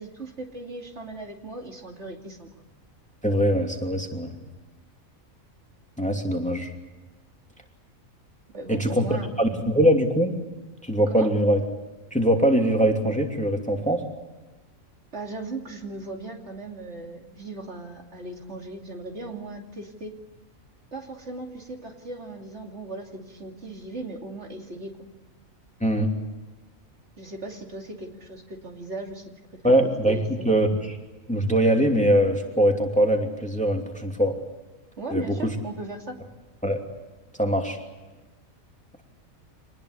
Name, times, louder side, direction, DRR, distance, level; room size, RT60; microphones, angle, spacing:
voice 1, 0.0-2.5 8.5-9.3 11.1-11.3 15.1-20.1 20.9-24.9 27.2-29.2 29.6-30.5 35.0-36.2, right 2 dB, 55° right, 2 dB, 3.0 m, -37 dB
voice 2, 3.2-4.3 6.0-6.7 8.7-9.1 9.4-10.3 10.8-11.6 12.1-14.0 25.8-26.1 29.6-31.0 31.3-34.3 35.1-35.2 36.6-36.8 37.4-37.8, right 1 dB, 5° left, 2 dB, 2.8 m, -22 dB
26.5 x 20.0 x 8.3 m, 1.1 s
omnidirectional pair, 1.4 m